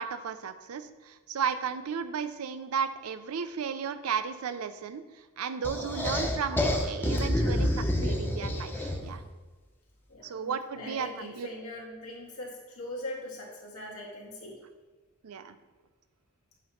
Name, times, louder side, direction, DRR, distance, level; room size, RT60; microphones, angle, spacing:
voice 1, 0.0-5.0 5.4-9.2 10.2-11.5 15.2-15.6, right 6 dB, 85° right, 11 dB, 0.5 m, -34 dB
sound 1, 5.6-9.2, left 1 dB, 10° left, 0.7 m, -28 dB
voice 2, 10.1-10.5 10.8-14.6, left 1 dB, 80° left, -3 dB, 1.9 m, -41 dB
8.2 x 2.9 x 5.6 m, 1.3 s
head